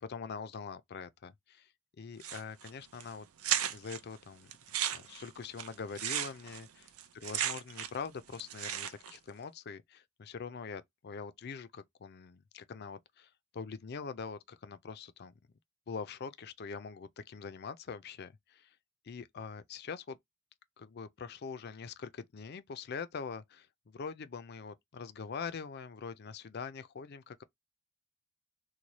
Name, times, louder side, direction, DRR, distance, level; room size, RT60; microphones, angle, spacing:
voice 1, 0.0-1.7 2.0-3.3 3.7-4.5 4.9-15.3 15.9-18.8 19.0-20.2 20.8-27.4, left 5 dB, 45° left, 0.4 m, -43 dB
sound 1, 2.2-2.7 3.0-3.1 3.4-4.0 4.5-8.1 8.3-9.2, right 10 dB, 85° right, 0.5 m, -35 dB
3.1 x 2.1 x 4.0 m
head